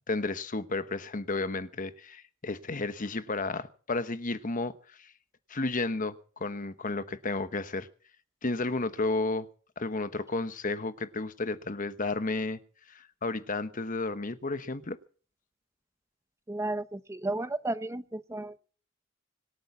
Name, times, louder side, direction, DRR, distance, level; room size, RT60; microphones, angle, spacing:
voice 1, 0.1-5.1 5.5-7.9 8.4-9.5 9.8-12.6 12.9-15.0, left 3 dB, 45° left, 1.0 m, -32 dB
voice 2, 16.5-18.6, right 2 dB, 15° right, 0.7 m, -33 dB
25.0 x 8.8 x 6.0 m
head